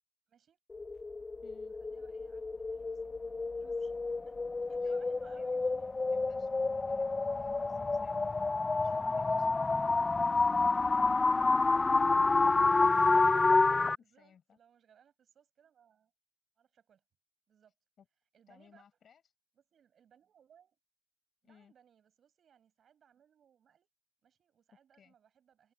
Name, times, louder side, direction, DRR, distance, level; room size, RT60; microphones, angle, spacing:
voice 1, 0.3-0.6 1.6-4.4 4.7-5.9 7.3-10.8 11.4-13.2 13.9-16.1 16.6-17.0 17.5-17.7 18.3-18.8 19.5-20.8 21.4-23.9 24.2-25.7, right 8 dB, 60° right, 6.9 m, -66 dB
sound 1, 0.7-14.0, left 3 dB, 25° left, 0.3 m, -29 dB
voice 2, 1.4-1.7 4.7-5.5 6.1-8.4 8.8-9.5 11.4-11.9 14.0-14.6 18.0-18.1 18.5-19.3 21.4-21.7 25.0-25.1, left 7 dB, 55° left, 6.9 m, -63 dB
cardioid pair, 90°, 0 cm